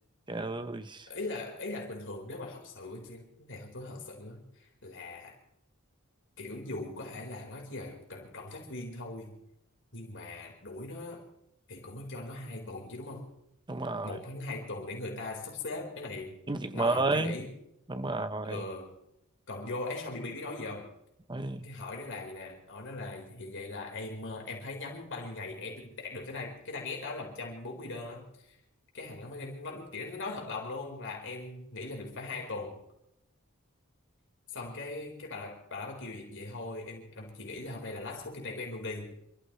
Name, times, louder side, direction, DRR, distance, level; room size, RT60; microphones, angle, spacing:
voice 1, 0.3-1.1 13.7-14.2 16.5-17.3 17.9-18.6 21.3-21.7, right 3 dB, 20° right, 0.8 m, -31 dB
voice 2, 1.1-5.4 6.4-9.4 9.9-11.2 11.7-13.3 14.0-16.4 16.7-17.5 18.5-19.0 19.5-20.9 21.6-28.6 28.9-32.8 34.5-39.1, left 2 dB, 55° left, 4.5 m, -40 dB
27.5 x 14.5 x 3.3 m
head